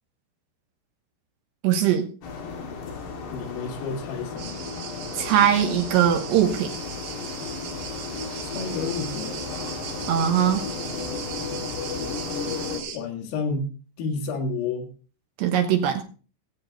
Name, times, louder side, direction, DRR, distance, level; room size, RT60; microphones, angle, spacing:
voice 1, 1.6-2.1 5.2-6.7 10.1-10.6 15.4-16.0, right 9 dB, 70° right, 6 dB, 2.9 m, -21 dB
sound 1, 2.2-12.8, left 5 dB, 60° left, 4.2 m, -34 dB
voice 2, 3.3-4.6 8.4-9.4 12.9-13.7 14.0-14.9, left 4 dB, 85° left, 1 dB, 4.8 m, -30 dB
sound 2, 4.4-13.0, right 8 dB, 90° right, 4.5 m, -38 dB
19.5 x 8.5 x 4.0 m, 0.38 s
omnidirectional pair, 5.8 m